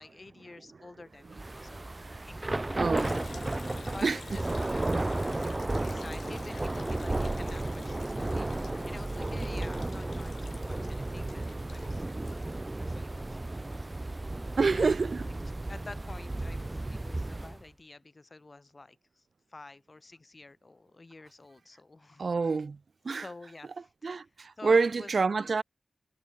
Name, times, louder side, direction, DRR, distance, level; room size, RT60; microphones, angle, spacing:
voice 1, 0.0-1.9 2.3-3.2 3.8-5.2 5.8-12.1 12.5-13.5 13.8-14.2 14.7-15.0 15.2-15.3 15.7-19.2 19.5-22.3 23.1-24.3 24.6-25.6, left 3 dB, 35° left, 1.9 m, -49 dB
Thunder / Rain, 1.3-17.6, right 2 dB, 25° right, 0.7 m, -34 dB
voice 2, 1.8-2.3 2.8-3.1 4.0-4.2 14.6-15.3 22.2-22.8 23.0-23.2 24.0-25.6, right 4 dB, 60° right, 1.1 m, -27 dB
Liquid, 3.0-13.1, left 5 dB, 70° left, 7.5 m, -50 dB
wide cardioid pair, 115°, 0 cm